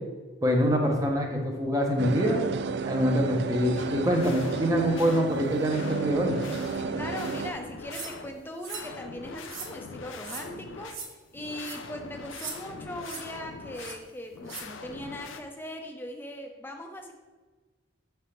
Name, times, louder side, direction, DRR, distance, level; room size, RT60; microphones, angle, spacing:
voice 1, 0.4-2.4 2.8-6.3, equal, 15° right, 1 dB, 0.8 m, -25 dB
sound 1, 2.0-7.5, right 4 dB, 55° right, 0.3 m, -32 dB
sound 2, 3.7-15.4, left 4 dB, 70° left, 0.5 m, -43 dB
voice 2, 6.8-17.1, equal, 10° left, 3 dB, 0.6 m, -40 dB
sound 3, 7.9-8.1 8.6-8.9 9.4-9.7 10.2-10.5 10.9-11.1 11.6-11.8 12.3-12.6 13.0-13.2 13.7-14.0 14.5-14.6, right 5 dB, 85° right, 1.2 m, -39 dB
7.2 x 3.4 x 5.7 m, 1.3 s
head